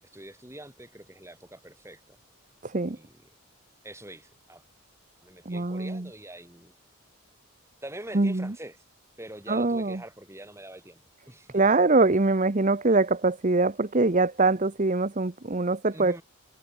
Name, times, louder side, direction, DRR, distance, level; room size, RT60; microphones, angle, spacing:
voice 1, 0.0-2.2 2.9-3.2 3.8-4.6 5.2-6.7 7.8-8.8 9.2-11.0 11.3-11.6 15.9-16.2, right 1 dB, 10° right, 7.4 m, -44 dB
voice 2, 2.6-3.0 5.4-6.1 8.1-8.5 9.5-10.0 11.5-16.2, right 3 dB, 35° right, 0.9 m, -23 dB
head